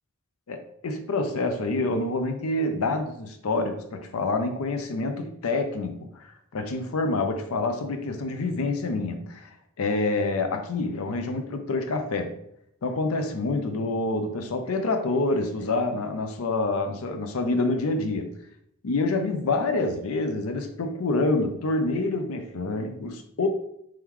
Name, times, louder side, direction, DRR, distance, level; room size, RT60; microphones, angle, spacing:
voice 1, 0.5-6.1 6.5-12.4 12.8-18.3 18.8-23.5, left 2 dB, 85° left, 0.5 m, -27 dB
4.6 x 3.0 x 3.7 m
head